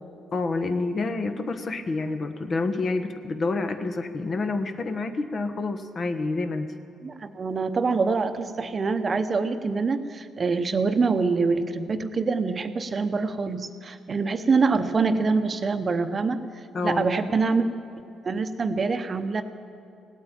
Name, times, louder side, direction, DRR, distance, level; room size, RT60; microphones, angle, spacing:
voice 1, 0.3-6.7 16.7-17.1, left 3 dB, 45° left, 8 dB, 1.2 m, -28 dB
voice 2, 7.0-16.4 16.8-17.7 18.2-19.4, right 4 dB, 40° right, 9 dB, 0.9 m, -25 dB
17.5 x 8.9 x 9.0 m, 2.5 s
cardioid pair, 90°, 0 cm